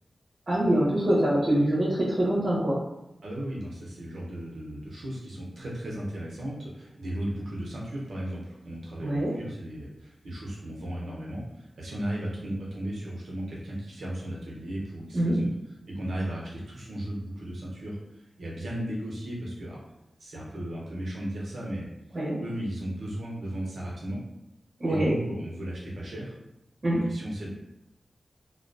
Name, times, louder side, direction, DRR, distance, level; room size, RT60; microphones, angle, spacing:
voice 1, 0.5-2.8 9.0-9.3 15.1-15.3 22.1-22.4 24.8-25.2 26.8-27.0, right 1 dB, 50° right, -7 dB, 0.7 m, -24 dB
voice 2, 3.2-15.5 15.9-19.8 20.2-21.9 22.4-24.2 24.8-26.4 26.8-27.5, right 1 dB, 90° right, -4 dB, 0.7 m, -35 dB
2.3 x 2.2 x 2.5 m, 0.88 s
wide cardioid pair, 90°, 0 cm